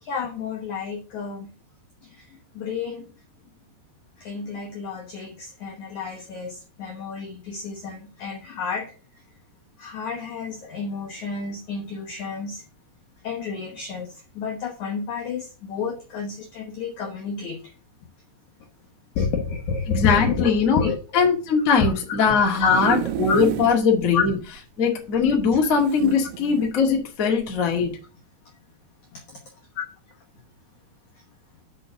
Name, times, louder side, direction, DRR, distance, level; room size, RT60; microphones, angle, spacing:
voice 1, 0.0-1.5 2.0-3.1 4.2-8.9 9.8-12.6 13.2-17.7 19.2-21.0 21.8-22.3 22.6-23.0 23.3-23.4 24.1-24.2 29.1-29.4, left 5 dB, 70° left, 1 dB, 1.8 m, -30 dB
voice 2, 19.9-20.8 21.1-24.3 24.8-27.9, left 5 dB, 40° left, 0 dB, 1.2 m, -20 dB
sound 1, 22.3-23.8 24.3-24.4 24.6-24.7 25.8-26.7 27.4-27.6, right 11 dB, 85° right, 2.4 m, -30 dB
6.4 x 5.7 x 6.5 m, 0.36 s
omnidirectional pair, 5.1 m